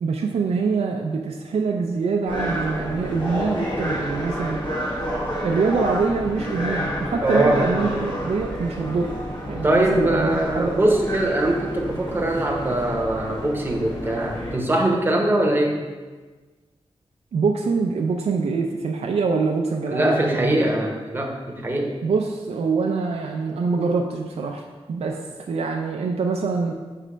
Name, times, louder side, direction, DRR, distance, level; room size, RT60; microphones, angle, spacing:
voice 1, 0.0-4.7 5.4-9.2 9.5-10.9 17.3-20.7 22.0-26.7, right 4 dB, 80° right, 2 dB, 0.4 m, -24 dB
sound 1, 2.3-14.6, equal, 50° left, 1.4 m, -30 dB
voice 2, 7.2-7.9 9.6-15.8 19.9-21.9, right 1 dB, 20° right, 0 dB, 0.9 m, -22 dB
6.2 x 3.3 x 5.0 m, 1.3 s
wide cardioid pair, 125°, 11 cm